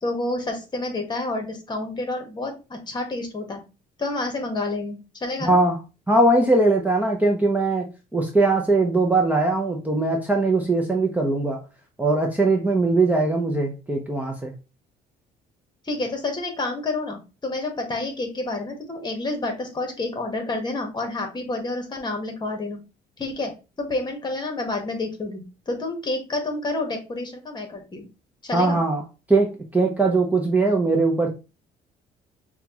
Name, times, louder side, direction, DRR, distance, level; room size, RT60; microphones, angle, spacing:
voice 1, 0.0-3.6 4.0-5.6 15.8-22.8 23.2-23.5 23.8-28.1 28.4-28.8, left 2 dB, 25° left, 4 dB, 1.3 m, -29 dB
voice 2, 5.4-5.8 6.1-11.6 12.0-14.5 28.5-29.0 29.3-31.3, right 2 dB, 10° right, 1 dB, 0.7 m, -20 dB
5.6 x 2.4 x 2.9 m, 0.30 s
cardioid pair, 110°, 17 cm